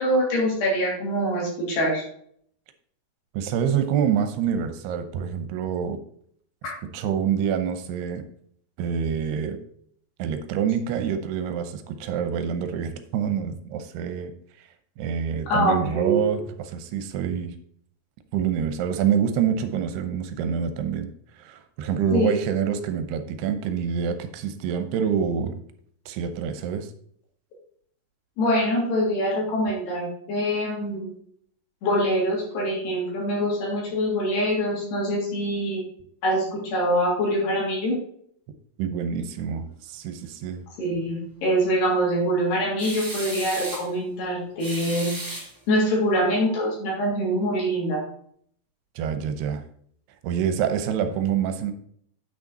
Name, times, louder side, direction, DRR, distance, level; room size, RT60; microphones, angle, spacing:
voice 1, 0.0-2.0 6.6-6.7 15.5-16.2 22.1-22.4 28.4-31.1 31.8-35.8 36.2-38.0 40.8-48.0, equal, 80° left, -3 dB, 5.1 m, -24 dB
voice 2, 3.3-6.0 6.6-8.2 8.8-9.6 10.2-14.3 15.0-17.5 18.3-21.1 21.4-25.6 26.1-26.9 38.8-40.7 49.0-49.6 50.2-51.7, right 8 dB, 80° right, 8 dB, 2.8 m, -26 dB
sound 1, 42.8-43.9 44.6-45.9, right 1 dB, 10° right, 1.4 m, -35 dB
8.9 x 6.2 x 4.1 m, 0.64 s
omnidirectional pair, 4.7 m